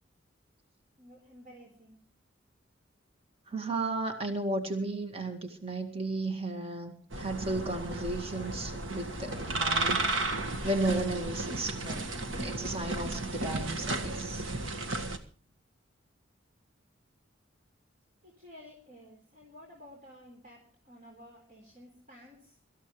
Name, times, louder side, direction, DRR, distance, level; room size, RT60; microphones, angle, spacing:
voice 1, 1.0-2.0 18.2-22.6, left 1 dB, 45° right, -1 dB, 4.2 m, -53 dB
voice 2, 3.5-12.1 12.4-14.5, right 2 dB, 30° right, 5 dB, 2.0 m, -34 dB
sound 1, 7.1-15.2, right 2 dB, 80° right, 1.8 m, -34 dB
24.0 x 14.5 x 3.2 m, 0.41 s
head